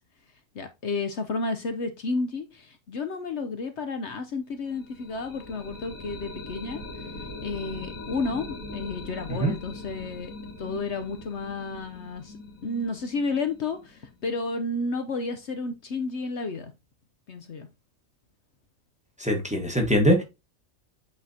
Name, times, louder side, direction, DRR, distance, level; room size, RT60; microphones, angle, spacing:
voice 1, 0.5-6.8 7.4-10.3 10.6-12.4 12.6-16.7 17.3-17.7, left 3 dB, 60° left, 1.0 m, -31 dB
sound 1, 4.6-14.4, left 2 dB, 80° left, 2.3 m, -41 dB
voice 2, 19.2-20.2, equal, 5° right, 1.3 m, -22 dB
8.7 x 4.2 x 2.7 m
omnidirectional pair, 1.4 m